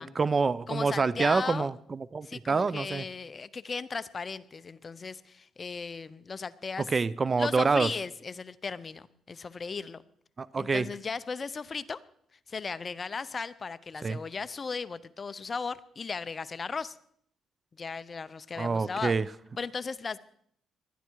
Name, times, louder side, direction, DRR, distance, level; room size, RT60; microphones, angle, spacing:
voice 1, 0.0-1.7 2.1-3.0 6.9-7.9 10.4-10.8 14.0-14.2 18.6-19.2, right 4 dB, 35° right, 0.5 m, -26 dB
voice 2, 0.7-1.7 2.2-6.9 7.4-10.0 10.6-12.0 12.5-17.0 17.8-19.2 19.6-20.2, left 5 dB, 35° left, 0.7 m, -36 dB
19.5 x 12.5 x 4.6 m
cardioid pair, 90°, 0 cm